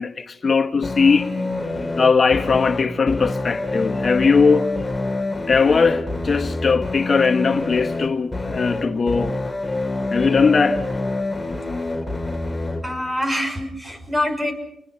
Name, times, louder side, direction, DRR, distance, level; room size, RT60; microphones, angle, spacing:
voice 1, 0.0-1.3 2.0-4.7 5.5-9.4 10.1-10.8, left 5 dB, 45° left, 1.3 m, -19 dB
sound 1, 0.8-12.8, left 2 dB, 10° left, 5.4 m, -26 dB
voice 2, 12.8-14.5, left 1 dB, 15° right, 6.1 m, -25 dB
30.0 x 21.0 x 5.8 m
cardioid pair, 90°, 0 cm